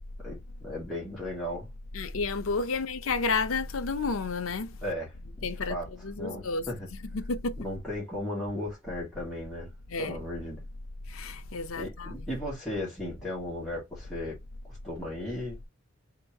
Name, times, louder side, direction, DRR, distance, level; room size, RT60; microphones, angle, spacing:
voice 1, 0.2-1.7 4.8-5.1 5.5-5.9 6.2-6.9 7.6-9.7 10.0-10.7 11.8-14.4 14.6-15.6, left 1 dB, ahead, 2.0 m, -36 dB
voice 2, 1.9-4.7 5.4-5.8 6.0-6.6 7.1-7.5 9.9-10.2 11.1-12.1, left 4 dB, 85° left, 0.6 m, -30 dB
3.5 x 2.9 x 4.6 m
head